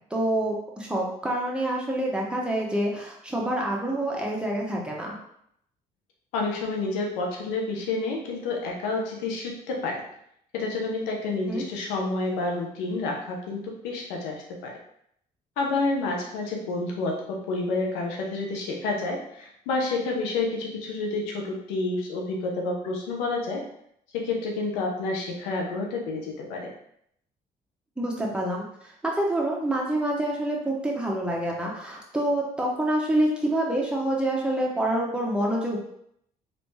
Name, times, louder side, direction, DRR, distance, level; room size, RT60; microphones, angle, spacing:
voice 1, 0.1-5.2 11.5-11.6 28.0-35.8, right 1 dB, 5° right, -2 dB, 1.1 m, -27 dB
voice 2, 6.3-10.0 10.5-14.8 15.6-23.6 24.1-26.7, left 3 dB, 90° left, 0 dB, 0.7 m, -29 dB
3.2 x 2.7 x 3.1 m, 0.72 s
supercardioid pair, 60°, 18 cm